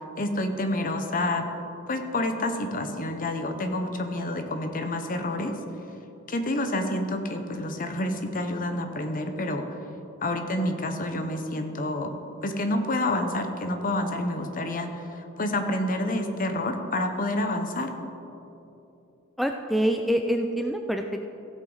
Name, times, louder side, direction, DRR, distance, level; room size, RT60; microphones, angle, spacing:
voice 1, 0.2-1.5 1.9-5.5 6.3-9.7 10.2-12.2 12.4-17.9, left 1 dB, 40° left, 6 dB, 0.9 m, -28 dB
voice 2, 19.4-21.2, equal, ahead, 4 dB, 0.3 m, -26 dB
15.5 x 7.9 x 4.0 m, 2.9 s
head